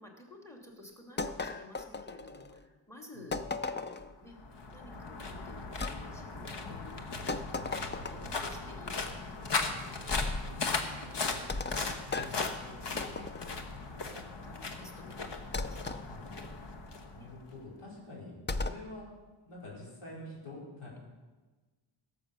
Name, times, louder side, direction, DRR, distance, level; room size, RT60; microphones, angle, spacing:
voice 1, 0.0-3.5 3.7-3.9 4.2-4.4 4.7-7.0 7.8-11.7 12.3-12.8 13.1-13.3 13.8-16.1 17.2-17.3 17.8-18.0, left 2 dB, 5° left, 1 dB, 2.4 m, -53 dB
Can drop clang, 1.2-2.6 3.3-4.1 5.8-6.0 7.3-8.4 10.1-10.5 11.5-13.6 15.5-16.0 18.5-18.9, left 3 dB, 25° left, 0.4 m, -36 dB
sound 1, 4.2-17.6, left 4 dB, 55° left, 1.3 m, -38 dB
voice 2, 10.4-10.9 12.1-12.4 16.0-16.2 17.1-19.1 19.4-21.0, left 2 dB, 80° left, -6 dB, 5.0 m, -47 dB
16.5 x 7.1 x 6.8 m, 1.2 s
wide cardioid pair, 140°, 49 cm